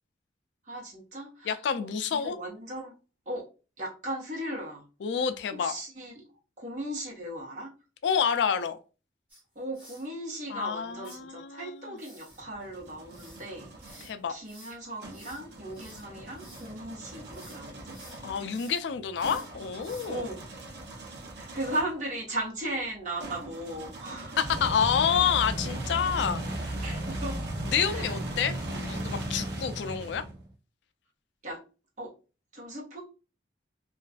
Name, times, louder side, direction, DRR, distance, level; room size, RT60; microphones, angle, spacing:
voice 1, 0.7-2.9 3.3-3.5 3.8-4.8 5.5-6.3 6.6-7.7 9.5-18.0 18.5-18.6 20.1-20.4 20.9-24.4 26.1-26.2 26.8-27.4 27.9-28.2 31.4-31.6 32.0-32.1 32.5-33.0, right 1 dB, 40° right, 1.0 m, -37 dB
voice 2, 1.4-2.4 5.0-5.7 8.0-8.8 10.5-12.0 14.0-14.3 18.2-20.3 24.4-26.7 27.7-30.2, left 7 dB, 75° left, 0.3 m, -28 dB
sound 1, 9.3-10.1 11.0-11.2 12.0-16.8 17.1-17.6 17.9-20.3, equal, 10° right, 1.1 m, -52 dB
sound 2, 12.3-14.1 15.0-22.0 23.2-30.5, right 1 dB, 65° right, 0.6 m, -37 dB
2.4 x 2.3 x 2.3 m
head